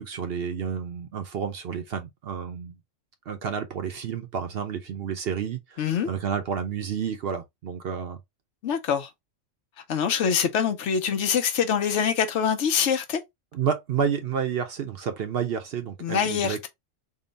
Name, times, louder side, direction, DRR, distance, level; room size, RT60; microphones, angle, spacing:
voice 1, 0.0-2.7 3.3-8.2 13.5-16.7, right 7 dB, 60° right, 0.8 m, -30 dB
voice 2, 5.8-6.1 8.6-9.1 9.9-13.2 16.0-16.7, left 7 dB, 70° left, 0.9 m, -24 dB
3.8 x 2.1 x 3.7 m
omnidirectional pair, 1.3 m